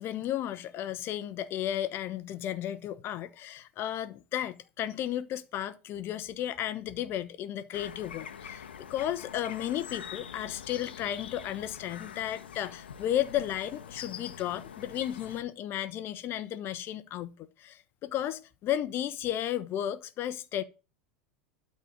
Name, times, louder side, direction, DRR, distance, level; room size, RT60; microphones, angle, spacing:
voice 1, 0.0-8.6 8.9-17.3 17.6-20.6, left 11 dB, 45° left, 1.1 m, -34 dB
sound 1, 7.7-15.4, left 8 dB, 85° left, 1.1 m, -45 dB
12.5 x 4.4 x 7.5 m
hypercardioid pair, 90°, 5 cm